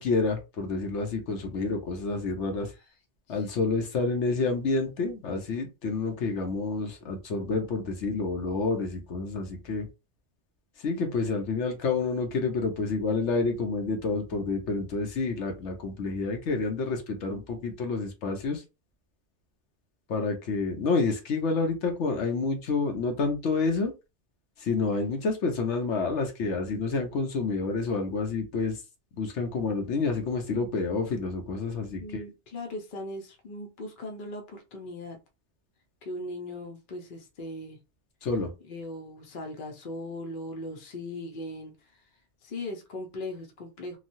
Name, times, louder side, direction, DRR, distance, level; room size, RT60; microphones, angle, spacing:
voice 1, 0.0-2.7 3.3-9.9 10.8-18.6 20.1-23.9 24.6-28.8 29.2-32.2 38.2-38.5, left 4 dB, 80° left, 1.0 m, -29 dB
voice 2, 32.0-35.2 36.0-37.8 38.6-41.7 42.4-44.0, left 1 dB, 50° left, 0.9 m, -39 dB
3.0 x 2.3 x 2.6 m
omnidirectional pair, 1.2 m